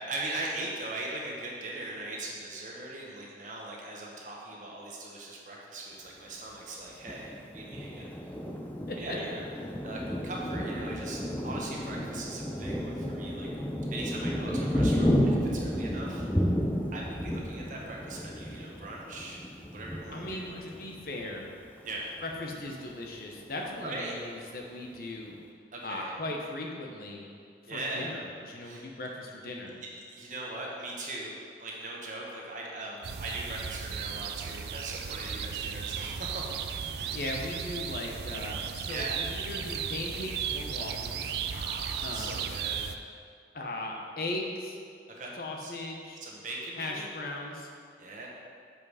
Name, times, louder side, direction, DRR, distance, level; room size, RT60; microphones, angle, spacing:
voice 1, 0.1-8.1 9.0-9.4 9.8-13.5 13.9-16.3 16.9-19.4 19.7-20.6 21.8-22.1 23.8-24.1 25.7-26.1 27.7-28.1 28.6-28.9 29.8-36.6 37.0-37.2 38.9-39.2 41.5-42.9 45.2-45.7 46.2-47.1 48.0-48.3, right 2 dB, 45° right, -3 dB, 1.2 m, -40 dB
Thunder, 7.0-21.4 21.9-22.0 22.3-22.9, equal, 10° left, 0.5 m, -32 dB
voice 2, 20.1-21.5 22.2-25.4 25.8-27.3 27.6-29.7 37.1-41.3 42.0-42.4 43.5-44.8 45.4-46.2 46.8-47.7, left 2 dB, 50° left, 0 dB, 0.9 m, -38 dB
sound 1, 33.0-43.0, right 7 dB, 60° right, 0.4 m, -35 dB
7.2 x 5.3 x 4.8 m, 2.2 s
head